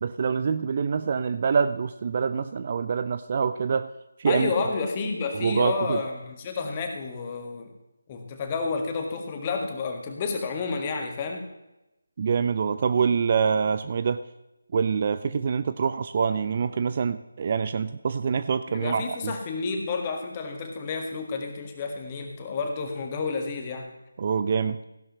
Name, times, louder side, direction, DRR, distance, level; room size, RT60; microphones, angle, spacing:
voice 1, 0.0-3.9 4.2-4.5 5.3-6.0 12.2-14.2 14.7-19.3 24.2-24.8, right 6 dB, 35° right, 12 dB, 0.4 m, -25 dB
voice 2, 4.2-7.7 8.1-11.5 18.7-23.9, left 4 dB, 25° left, 3 dB, 1.6 m, -30 dB
15.5 x 11.5 x 3.1 m, 0.93 s
figure-of-eight pair, 155°, 0 cm